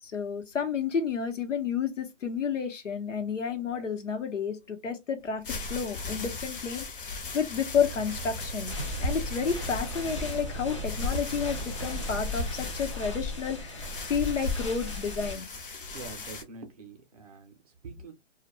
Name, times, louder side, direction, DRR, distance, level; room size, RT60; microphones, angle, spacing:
voice 1, 0.0-6.9 7.3-8.7 9.0-15.5, left 6 dB, 75° left, 0.9 m, -31 dB
sound 1, 5.2-16.4, left 4 dB, 45° left, 0.8 m, -40 dB
sound 2, 7.7-12.8, right 4 dB, 75° right, 0.6 m, -41 dB
sound 3, 8.7-15.3, left 2 dB, 25° left, 0.4 m, -35 dB
voice 2, 15.7-18.1, right 3 dB, 30° right, 0.6 m, -45 dB
2.3 x 2.1 x 2.9 m
hypercardioid pair, 150°, 37 cm